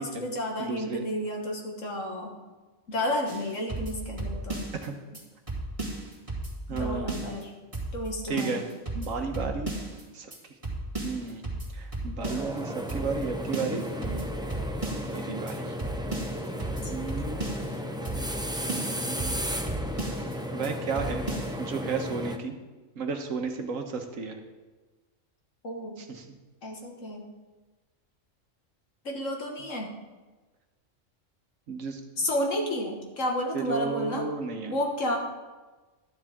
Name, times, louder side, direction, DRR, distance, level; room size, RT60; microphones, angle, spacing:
voice 1, 0.0-2.3 2.9-4.6 6.7-7.5 7.9-8.6 16.8-17.6 25.6-26.0 26.6-27.2 29.0-29.9 32.2-34.2 34.7-35.2, left 1 dB, 70° left, 0 dB, 2.0 m, -31 dB
voice 2, 0.6-1.0 4.8-4.9 6.7-7.2 8.3-8.7 8.9-9.7 10.1-10.3 11.0-11.4 11.7-14.3 15.1-15.8 16.8-17.6 18.7-19.9 20.5-21.2 21.6-22.6 23.0-24.4 26.0-26.2 31.7-32.0 33.5-34.7, right 5 dB, 80° right, 4 dB, 1.5 m, -33 dB
sound 1, 3.3-4.9 5.1-5.2 5.5-7.4 7.7-8.1 8.4-10.0 10.3-10.4 10.6-12.6 12.9-13.2 13.5-15.2 15.5-15.6 15.8-17.8 18.0-18.4 18.7-20.3 20.6-20.7 20.9-21.5, right 2 dB, 25° right, 2.3 m, -35 dB
sound 2, 12.2-22.4, equal, 5° right, 0.4 m, -34 dB
12.0 x 10.5 x 3.7 m, 1.2 s
omnidirectional pair, 1.4 m